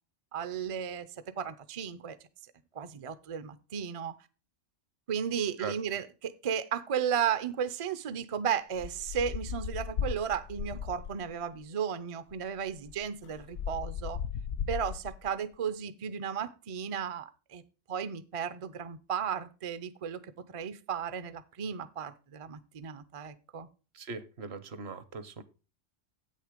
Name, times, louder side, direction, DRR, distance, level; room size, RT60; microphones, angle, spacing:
voice 1, 0.3-1.1 1.4-2.2 2.7-4.2 5.1-14.2 14.7-17.6 17.9-20.2 20.5-23.7, right 8 dB, 45° right, 0.4 m, -34 dB
sound 1, 8.7-11.3 12.3-12.4 12.7-15.3, left 8 dB, 75° left, 0.9 m, -37 dB
voice 2, 23.9-25.4, right 5 dB, 65° right, 1.0 m, -40 dB
8.1 x 6.6 x 5.0 m
omnidirectional pair, 1.3 m